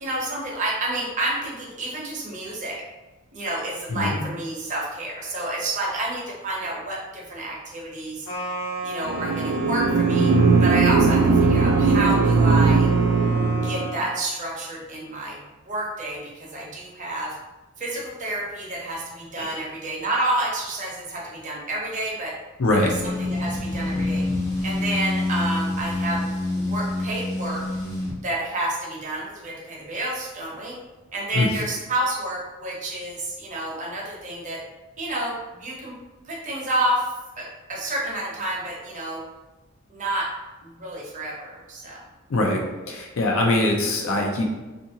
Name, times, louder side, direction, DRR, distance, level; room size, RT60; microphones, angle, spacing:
voice 1, 0.0-2.8 3.3-8.3 8.8-10.3 10.6-12.9 13.5-17.4 17.8-22.3 22.7-24.2 24.6-27.6 28.2-30.7 31.1-34.6 35.0-35.9 36.3-37.1 37.4-39.2 39.9-40.3 40.6-42.0, right 1 dB, 35° right, -4 dB, 0.7 m, -29 dB
sound 1, 8.2-14.2, right 3 dB, 85° left, 0.8 m, -34 dB
sound 2, 9.1-14.0, right 4 dB, 70° right, 0.3 m, -19 dB
voice 2, 22.6-22.9 31.4-31.5 42.3-44.4, left 2 dB, 70° left, 1 dB, 0.5 m, -23 dB
sound 3, 22.8-28.1, left 2 dB, 15° left, 0.5 m, -27 dB
2.8 x 2.5 x 2.7 m, 1.1 s
head